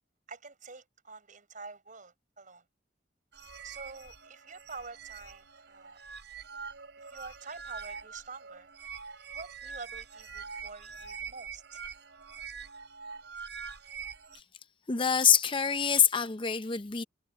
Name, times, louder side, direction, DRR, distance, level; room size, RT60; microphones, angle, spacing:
voice 1, 0.3-2.7 3.6-6.0 7.0-8.7 9.3-11.8, right 4 dB, 45° right, 5.8 m, -47 dB
sound 1, 3.3-14.4, right 6 dB, 70° right, 6.2 m, -44 dB
voice 2, 14.9-17.0, left 7 dB, 30° left, 0.6 m, -25 dB
head